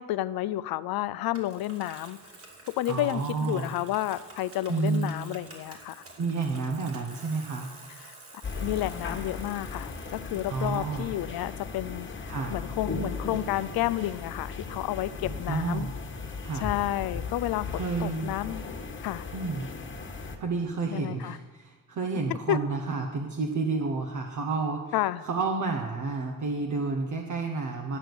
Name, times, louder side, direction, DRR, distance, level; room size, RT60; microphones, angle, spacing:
voice 1, 0.0-2.2 2.7-6.0 8.0-8.1 8.6-15.9 16.5-18.6 19.0-19.3 20.9-21.4 22.5-22.6 24.9-25.2, left 14 dB, 85° left, 15 dB, 0.5 m, -31 dB
Bicycle, 1.3-11.0, right 2 dB, 40° right, 2.7 m, -49 dB
voice 2, 2.9-3.7 4.7-5.1 6.2-7.7 10.5-11.1 12.3-12.6 15.5-15.9 16.4-16.7 17.7-18.3 19.3-19.7 20.4-24.9 25.2-28.0, right 4 dB, 55° right, 3 dB, 1.1 m, -30 dB
sound 1, 8.4-20.4, left 4 dB, 35° left, 1.4 m, -37 dB
12.5 x 6.3 x 6.8 m, 1.3 s
cardioid pair, 100°, 35 cm